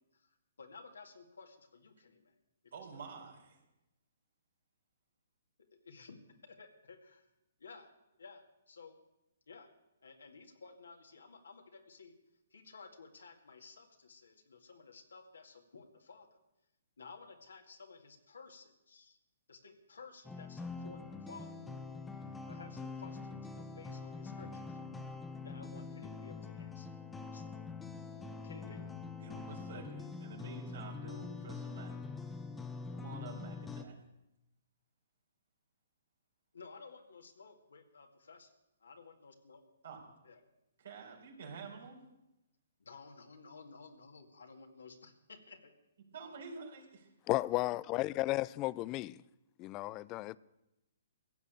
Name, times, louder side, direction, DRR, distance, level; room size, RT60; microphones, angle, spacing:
voice 1, 0.1-2.4 2.8-3.0 5.8-7.3 7.6-7.9 8.2-9.0 9.5-9.7 10.0-12.1 12.5-16.3 17.0-19.2 19.5-21.5 22.5-24.8 25.4-26.9 27.3-27.6 28.3-28.9 36.5-39.6 40.2-40.4 42.8-45.7, left 4 dB, 80° left, 2.1 m, -55 dB
voice 2, 2.7-3.6 28.6-31.9 32.9-34.0 39.8-40.0 40.8-42.0 46.1-47.1, right 4 dB, 75° right, 4.2 m, -49 dB
sound 1, 20.2-33.8, left 4 dB, 10° left, 1.0 m, -44 dB
voice 3, 47.3-49.2 49.6-50.4, left 18 dB, 30° left, 0.4 m, -34 dB
15.5 x 6.5 x 8.9 m
hypercardioid pair, 135°, 0 cm